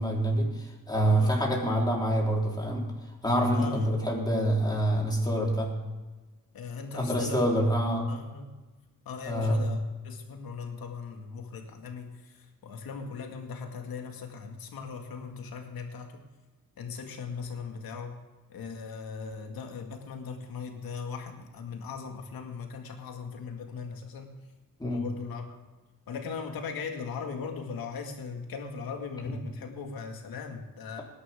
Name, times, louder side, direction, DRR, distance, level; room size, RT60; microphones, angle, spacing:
voice 1, 0.0-2.8 3.2-5.7 6.9-8.1 9.2-9.7 24.8-25.0, right 1 dB, 10° left, -3 dB, 4.0 m, -26 dB
voice 2, 1.0-1.4 3.5-3.9 6.5-7.7 8.1-8.5 9.1-16.2 16.8-18.2 18.5-24.3 24.8-25.5 26.1-31.0, left 5 dB, 85° left, 3 dB, 2.2 m, -39 dB
19.5 x 11.0 x 3.7 m, 1.2 s
cardioid pair, 105°, 35 cm